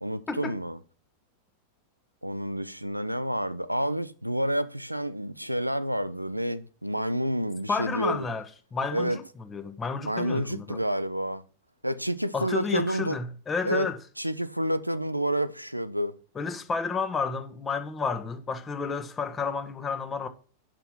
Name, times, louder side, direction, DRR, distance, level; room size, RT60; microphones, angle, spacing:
voice 1, 0.0-0.8 2.2-8.3 8.9-9.2 10.0-11.4 11.8-13.2 13.6-13.9 14.2-16.1, right 1 dB, 90° right, 0.5 m, -29 dB
voice 2, 7.7-8.4 8.7-9.2 9.5-10.8 12.3-14.0 16.3-20.3, left 5 dB, 20° left, 1.1 m, -31 dB
6.8 x 5.9 x 6.1 m
figure-of-eight pair, 90°, 0 cm